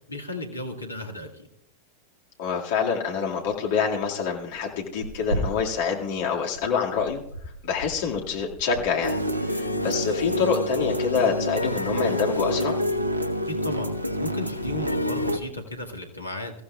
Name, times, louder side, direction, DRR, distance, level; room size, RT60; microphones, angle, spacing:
voice 1, 0.0-1.5 13.5-13.9 14.2-16.6, left 1 dB, 85° left, 4 dB, 1.8 m, -34 dB
voice 2, 2.4-7.2 7.6-9.2 9.5-12.8, left 6 dB, 50° left, 0 dB, 2.1 m, -26 dB
Tearing, 3.3-15.9, right 1 dB, 60° right, 4.2 m, -40 dB
sound 1, 9.0-15.4, equal, 85° right, 0.9 m, -27 dB
25.5 x 15.0 x 2.4 m, 0.75 s
figure-of-eight pair, 90°, 0 cm